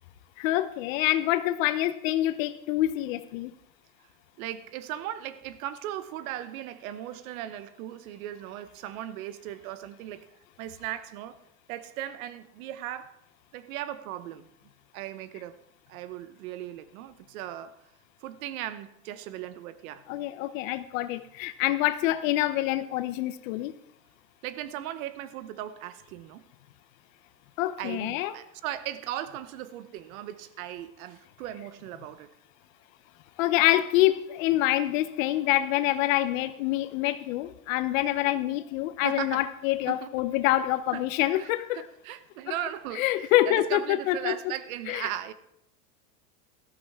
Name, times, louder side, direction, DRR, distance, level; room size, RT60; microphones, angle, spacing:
voice 1, 0.4-3.5 20.1-23.7 27.6-28.3 33.4-41.8 43.0-44.4 44.9-45.1, left 15 dB, 60° left, 0.8 m, -26 dB
voice 2, 4.4-10.3 10.6-11.4 11.7-13.2 13.5-14.5 14.9-15.6 15.9-17.8 18.2-20.0 24.4-26.4 27.8-32.3 39.0-39.4 39.9-40.2 40.9-41.0 41.3-45.3, right 12 dB, 65° right, 1.0 m, -37 dB
13.5 x 13.0 x 3.6 m
supercardioid pair, 140°, 44 cm